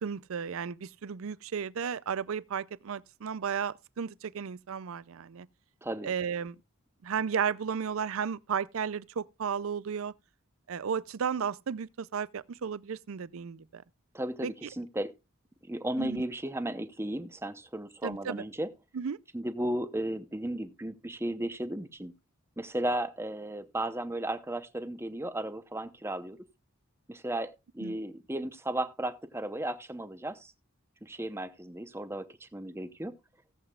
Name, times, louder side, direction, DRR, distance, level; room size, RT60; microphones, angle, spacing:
voice 1, 0.0-5.5 6.0-6.6 7.0-10.1 10.7-13.8 14.4-14.5 16.0-16.3 18.0-18.4 18.9-19.2 27.8-28.0, right 7 dB, 70° right, 0.5 m, -34 dB
voice 2, 5.8-6.1 14.1-15.1 15.7-18.7 19.3-22.1 22.6-26.4 27.1-30.5 31.0-33.1, right 1 dB, 10° right, 0.8 m, -35 dB
17.5 x 8.0 x 2.4 m
head